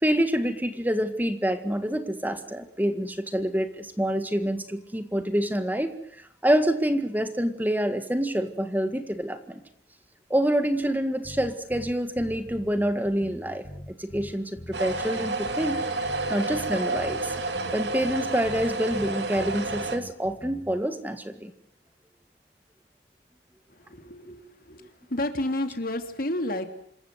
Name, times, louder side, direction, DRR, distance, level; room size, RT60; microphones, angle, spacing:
voice 1, 0.0-9.6 10.3-13.7 14.0-15.8 16.3-17.3 17.7-21.5, equal, 10° right, 9 dB, 1.9 m, -27 dB
sound 1, 11.2-20.8, left 1 dB, 25° left, 1.9 m, -43 dB
sound 2, 14.7-20.0, right 2 dB, 80° right, 2.9 m, -30 dB
voice 2, 23.9-24.8 25.1-26.7, left 1 dB, 55° left, 8 dB, 2.9 m, -30 dB
27.0 x 15.0 x 9.4 m, 0.70 s
head